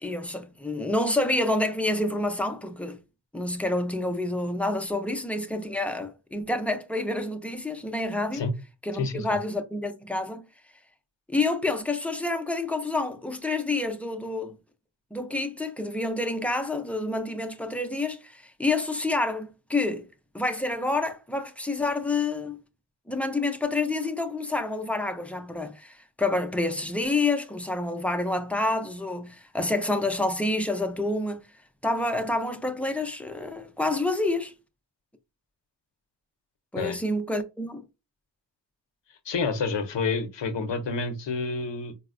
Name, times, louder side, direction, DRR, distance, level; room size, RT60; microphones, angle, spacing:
voice 1, 0.0-3.0 3.3-8.4 8.8-10.5 11.3-14.5 15.1-20.1 20.3-22.6 23.1-31.4 31.8-34.5 36.7-37.8, left 2 dB, 5° left, 0.4 m, -28 dB
voice 2, 39.3-41.9, left 4 dB, 75° left, 0.6 m, -28 dB
4.1 x 2.0 x 2.4 m
wide cardioid pair, 80°, 43 cm